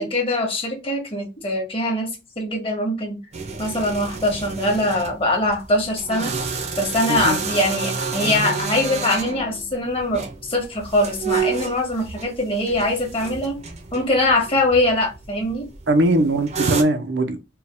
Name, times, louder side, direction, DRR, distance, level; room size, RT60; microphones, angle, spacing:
voice 1, 0.0-2.1 2.4-3.2 3.6-6.3 6.8-13.6 13.9-15.6, left 1 dB, 30° left, 1.5 m, -22 dB
sound 1, 3.3-16.8, right 5 dB, 40° right, 0.7 m, -30 dB
voice 2, 15.9-17.4, right 1 dB, 75° right, 0.7 m, -20 dB
4.5 x 2.3 x 3.5 m
head